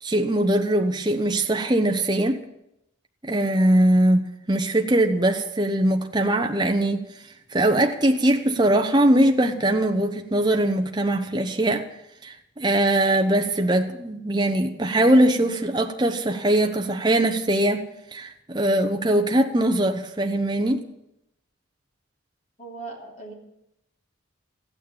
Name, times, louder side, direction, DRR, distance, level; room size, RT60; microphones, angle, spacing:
voice 1, 0.0-2.4 3.2-7.1 7.5-11.8 12.2-20.8, right 1 dB, 20° right, 4 dB, 0.8 m, -21 dB
voice 2, 22.6-23.3, right 3 dB, 35° left, -1 dB, 3.3 m, -38 dB
14.5 x 9.2 x 8.7 m, 0.84 s
head